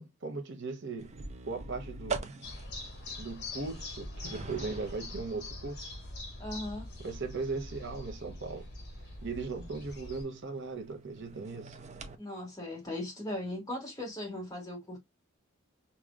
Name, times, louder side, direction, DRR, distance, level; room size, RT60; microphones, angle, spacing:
voice 1, 0.0-2.3 3.2-5.9 7.0-8.7 9.2-11.8, right 3 dB, 60° right, 0.9 m, -38 dB
sound 1, 1.0-12.2, right 4 dB, 35° right, 0.6 m, -45 dB
sound 2, 2.4-10.2, left 2 dB, 55° left, 1.6 m, -44 dB
voice 2, 6.4-6.9 12.2-15.0, left 1 dB, 20° left, 2.1 m, -38 dB
4.8 x 2.8 x 2.4 m
head